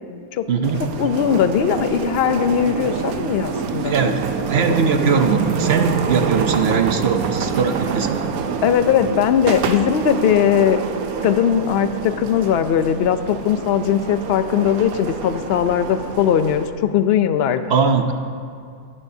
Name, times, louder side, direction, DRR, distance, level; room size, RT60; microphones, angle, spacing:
voice 1, 0.5-0.8 3.8-8.2 17.7-18.1, right 5 dB, 55° right, 6 dB, 0.8 m, -20 dB
sound 1, 0.6-16.7, right 6 dB, 90° right, 1.2 m, -26 dB
voice 2, 1.0-4.0 8.6-10.8 11.2-17.6, left 9 dB, 60° left, 10 dB, 0.7 m, -19 dB
21.0 x 11.0 x 2.7 m, 2.3 s
omnidirectional pair, 1.5 m